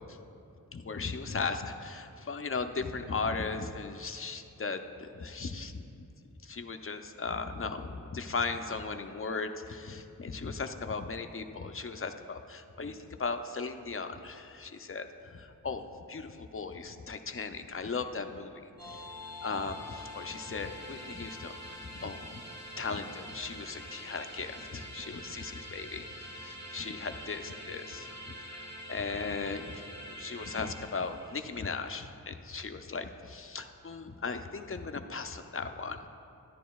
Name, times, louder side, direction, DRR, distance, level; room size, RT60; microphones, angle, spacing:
voice 1, 0.7-6.0 6.4-15.8 16.1-19.0 19.4-22.4 22.8-36.1, left 4 dB, 40° left, 7 dB, 0.5 m, -37 dB
sound 1, 18.8-31.9, equal, 85° right, 1.8 m, -45 dB
13.0 x 9.9 x 2.3 m, 2.6 s
wide cardioid pair, 50°, 34 cm